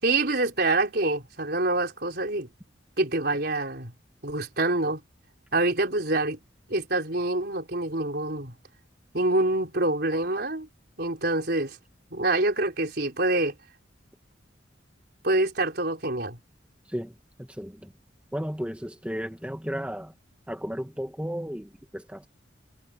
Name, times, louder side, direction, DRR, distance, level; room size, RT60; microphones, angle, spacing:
voice 1, 0.0-2.5 3.0-3.9 4.2-5.0 5.5-6.4 6.7-8.5 9.1-10.7 11.0-11.8 12.1-13.5 15.2-16.4, right 2 dB, 55° right, 4.4 m, -26 dB
voice 2, 16.9-17.9 18.3-20.1 20.5-22.3, equal, 5° right, 2.1 m, -34 dB
head